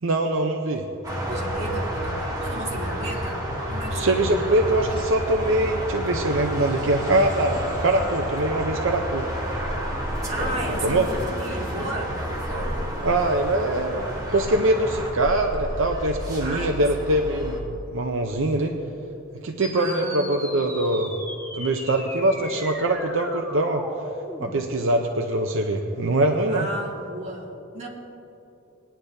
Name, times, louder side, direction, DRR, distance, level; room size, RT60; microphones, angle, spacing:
voice 1, 0.0-0.9 3.9-9.3 10.8-11.1 13.0-18.8 19.4-21.2 21.5-23.8 24.4-26.7, right 1 dB, 65° right, 3 dB, 0.7 m, -23 dB
sound 1, 1.0-17.6, equal, 20° right, 2.2 m, -30 dB
voice 2, 1.2-4.5 10.3-12.3 16.4-16.8 17.3-17.4 19.7-20.6 26.5-27.9, right 1 dB, 35° right, -3 dB, 2.0 m, -35 dB
sound 2, 19.6-24.6, left 1 dB, 10° left, 1.4 m, -38 dB
20.5 x 10.0 x 2.7 m, 2.9 s
head